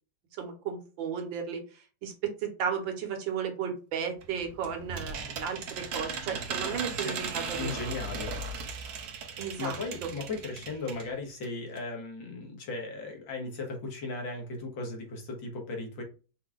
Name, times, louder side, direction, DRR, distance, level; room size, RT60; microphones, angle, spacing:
voice 1, 0.4-7.8 9.4-10.1, right 7 dB, 85° right, 5 dB, 1.8 m, -34 dB
sound 1, 4.2-11.1 11.4-11.5 11.8-11.9, right 5 dB, 60° right, 1.2 m, -37 dB
voice 2, 6.6-7.2 7.6-8.3 9.6-16.0, left 3 dB, 80° left, 0 dB, 2.1 m, -37 dB
5.4 x 3.8 x 2.4 m, 0.35 s
omnidirectional pair, 2.0 m